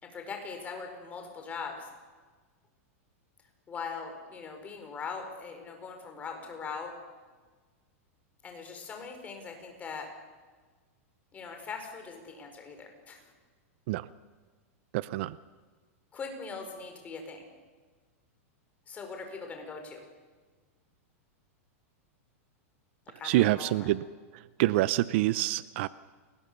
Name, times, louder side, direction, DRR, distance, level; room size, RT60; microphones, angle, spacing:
voice 1, 0.0-1.9 3.7-6.9 8.4-10.1 11.3-13.3 16.1-17.5 18.9-20.0 23.2-23.9, left 5 dB, 20° left, 4 dB, 4.8 m, -41 dB
voice 2, 14.9-15.4 23.2-24.0 24.6-25.9, right 16 dB, 50° right, 17 dB, 0.6 m, -26 dB
30.0 x 21.5 x 6.8 m, 1.4 s
supercardioid pair, 150°, 8 cm